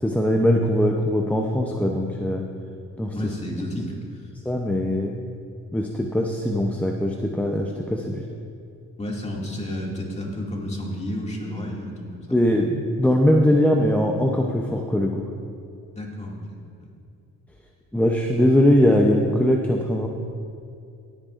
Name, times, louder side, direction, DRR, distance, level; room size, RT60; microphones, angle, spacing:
voice 1, 0.0-2.4 3.0-3.1 4.5-5.2 5.7-8.2 12.3-15.3 17.9-20.1, left 1 dB, 5° left, 0 dB, 0.7 m, -21 dB
voice 2, 3.1-4.3 9.0-12.4 15.9-16.9, left 1 dB, 20° left, -3 dB, 2.3 m, -32 dB
18.0 x 8.9 x 2.6 m, 2.5 s
cardioid pair, 90°, 30 cm